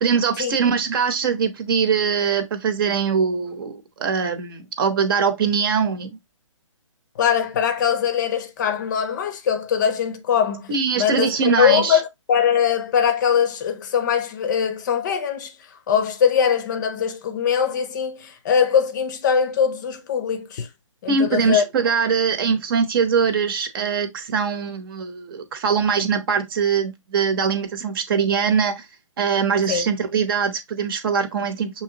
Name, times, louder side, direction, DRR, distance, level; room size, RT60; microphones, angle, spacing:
voice 1, 0.0-6.2 10.7-12.0 21.1-28.8 29.2-31.8, right 6 dB, 40° right, 0.9 m, -22 dB
voice 2, 7.2-15.6 15.9-20.7 21.0-21.6 29.7-29.9, left 8 dB, 35° left, 0.6 m, -21 dB
6.1 x 2.9 x 2.8 m
figure-of-eight pair, 140°, 17 cm